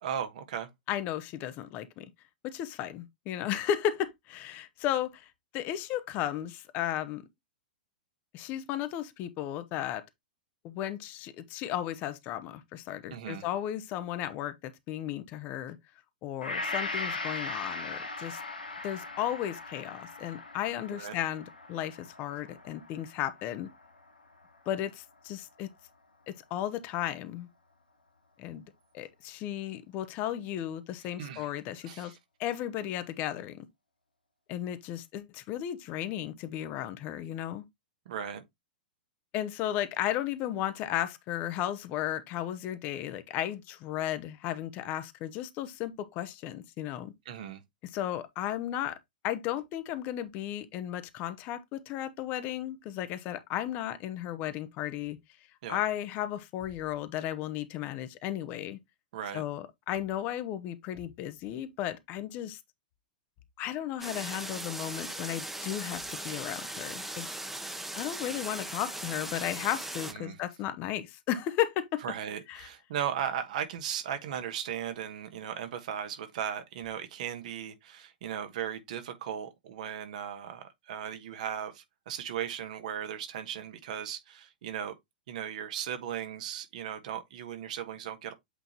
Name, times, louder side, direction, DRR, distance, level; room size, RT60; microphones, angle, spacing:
voice 1, 0.0-0.7 13.1-13.4 20.9-21.2 31.2-31.5 31.8-32.2 38.0-38.4 47.2-47.6 55.6-55.8 59.1-59.4 70.1-70.4 72.0-84.9 85.3-88.3, right 9 dB, 55° right, 1.3 m, -37 dB
voice 2, 0.9-2.1 2.4-7.2 8.3-10.0 10.6-15.8 16.2-18.4 18.8-23.7 24.7-25.7 26.3-27.5 28.4-28.6 28.9-32.1 32.4-33.7 34.5-37.6 39.3-47.1 47.9-49.0 49.2-55.2 55.7-58.8 59.3-62.6 63.6-67.3 67.9-72.0 72.5-72.7, left 12 dB, 35° left, 1.0 m, -34 dB
Gong, 16.4-24.7 25.2-25.3, left 3 dB, 85° left, 1.5 m, -39 dB
sound 1, 64.0-70.1, right 1 dB, 5° right, 1.1 m, -39 dB
8.2 x 3.9 x 3.0 m
figure-of-eight pair, 105°, 5 cm